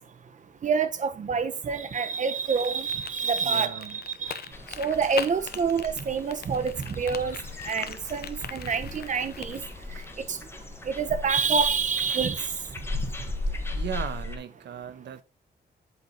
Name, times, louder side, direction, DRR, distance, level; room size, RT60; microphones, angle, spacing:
voice 1, 0.6-4.3 4.8-7.4 7.7-9.6 11.0-12.5, right 5 dB, 45° right, 1.1 m, -27 dB
sound 1, 2.4-10.1, left 8 dB, 60° left, 0.9 m, -41 dB
voice 2, 3.4-4.0 13.7-15.2, right 8 dB, 75° right, 1.2 m, -37 dB
sound 2, 4.5-14.4, left 2 dB, 15° left, 1.5 m, -37 dB
8.4 x 8.2 x 2.9 m
wide cardioid pair, 160°, 18 cm